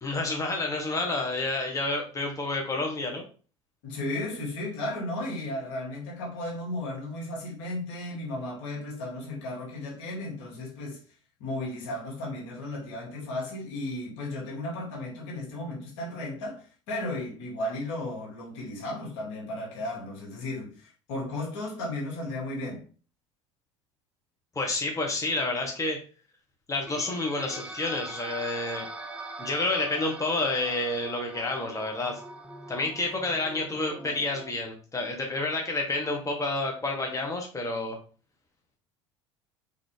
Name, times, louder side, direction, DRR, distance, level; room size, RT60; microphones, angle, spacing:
voice 1, 0.0-3.2 24.5-26.0 26.7-28.9 29.4-32.2 32.7-38.0, left 2 dB, 20° left, 1.4 m, -29 dB
voice 2, 3.8-11.0 11.4-22.8, left 1 dB, 70° left, 2.4 m, -35 dB
sound 1, 26.9-34.5, right 2 dB, 10° right, 0.6 m, -42 dB
4.2 x 3.8 x 3.4 m
hypercardioid pair, 75°, 16 cm